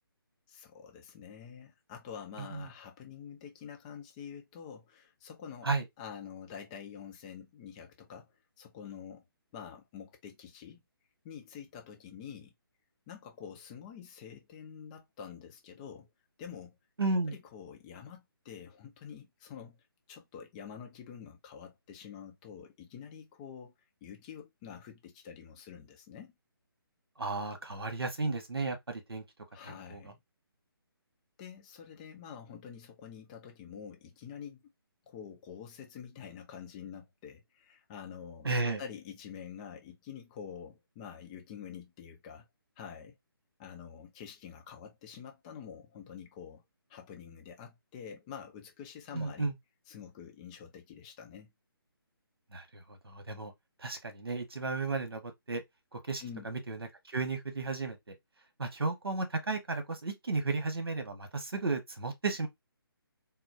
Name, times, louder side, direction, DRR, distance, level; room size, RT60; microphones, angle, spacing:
voice 1, 0.5-5.7 6.0-9.2 9.5-10.8 11.2-12.5 13.1-16.1 16.4-16.8 17.5-19.8 20.1-23.7 24.0-26.3 29.5-30.2 31.4-34.6 35.1-42.5 42.8-43.2 43.6-46.6 46.9-49.5 49.9-51.5 56.2-56.5, left 7 dB, 15° left, 0.5 m, -47 dB
voice 2, 2.4-2.7 5.6-5.8 17.0-17.3 27.2-29.2 29.6-30.0 38.4-38.8 49.1-49.5 52.5-53.5 53.8-55.6 55.9-58.1 58.6-62.5, right 3 dB, 75° right, 1.2 m, -34 dB
4.2 x 2.0 x 2.7 m
figure-of-eight pair, 145°, 13 cm